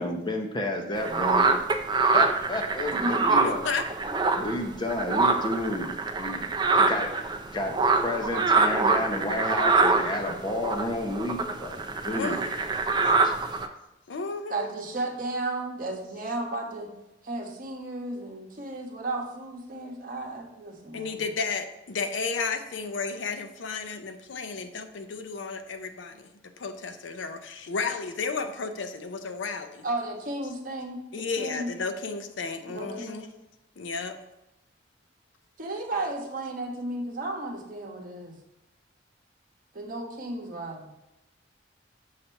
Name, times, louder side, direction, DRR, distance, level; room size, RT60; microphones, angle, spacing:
voice 1, 0.0-1.5 2.1-3.6 4.3-7.1 7.5-11.8 12.0-12.4 13.2-13.3, left 1 dB, 25° left, 3 dB, 0.6 m, -31 dB
sound 1, 1.0-4.6 4.9-13.7, right 3 dB, 25° right, 0.4 m, -25 dB
voice 2, 2.9-3.3 14.5-16.9 17.2-21.2 29.8-31.7 32.7-33.3 35.6-38.4 39.7-40.9, right 2 dB, 45° right, 0 dB, 1.1 m, -34 dB
voice 3, 3.4-3.9 12.1-12.5 14.1-14.6 20.9-26.3 26.6-29.8 31.1-33.3 33.8-34.2, left 4 dB, 85° left, 8 dB, 0.6 m, -33 dB
6.5 x 2.9 x 5.5 m, 0.91 s
head